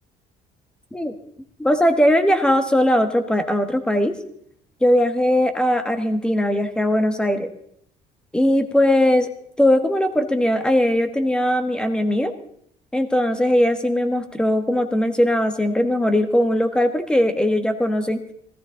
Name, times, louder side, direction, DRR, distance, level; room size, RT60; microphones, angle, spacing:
voice 1, 1.6-4.1 4.8-7.5 8.3-9.3 9.6-12.3 12.9-18.2, left 1 dB, 5° left, 9 dB, 1.4 m, -19 dB
19.0 x 14.0 x 3.9 m, 0.68 s
cardioid pair, 135°, 14 cm